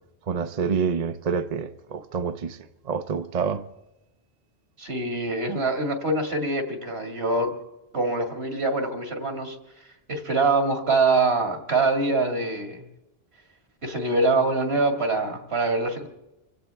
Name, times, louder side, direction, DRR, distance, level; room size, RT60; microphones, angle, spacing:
voice 1, 0.3-2.6 2.8-3.6, right 6 dB, 45° right, 0.7 m, -27 dB
voice 2, 4.8-7.5 7.9-9.6 10.1-12.8 13.8-16.1, right 3 dB, 75° right, 2.4 m, -24 dB
25.5 x 16.5 x 3.4 m
omnidirectional pair, 1.0 m